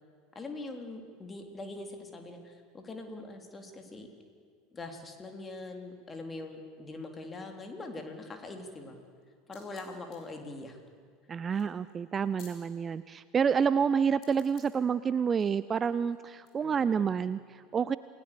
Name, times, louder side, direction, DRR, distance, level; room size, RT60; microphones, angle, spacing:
voice 1, 0.4-4.1 4.7-9.0 9.5-10.8 11.5-11.7 16.6-17.1, left 2 dB, 20° left, 4 dB, 3.6 m, -43 dB
sound 1, 9.1-12.9 14.2-14.9 15.4-16.5, left 7 dB, 45° left, 5.7 m, -59 dB
voice 2, 11.3-18.0, right 6 dB, 25° right, 16 dB, 0.5 m, -28 dB
28.5 x 19.0 x 7.0 m, 2.1 s
figure-of-eight pair, 75°, 0 cm